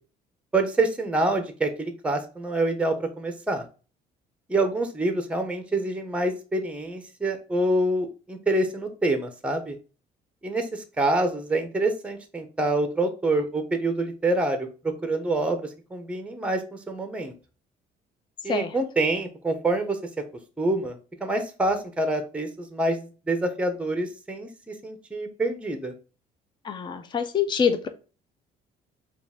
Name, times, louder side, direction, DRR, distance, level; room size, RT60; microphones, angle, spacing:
voice 1, 0.5-3.6 4.5-9.8 10.4-17.3 18.4-20.0 20.6-25.9, right 2 dB, 5° right, 8 dB, 0.7 m, -26 dB
voice 2, 26.6-27.9, left 7 dB, 25° left, 8 dB, 0.5 m, -25 dB
4.7 x 2.4 x 3.5 m, 0.35 s
cardioid pair, 110°, 17 cm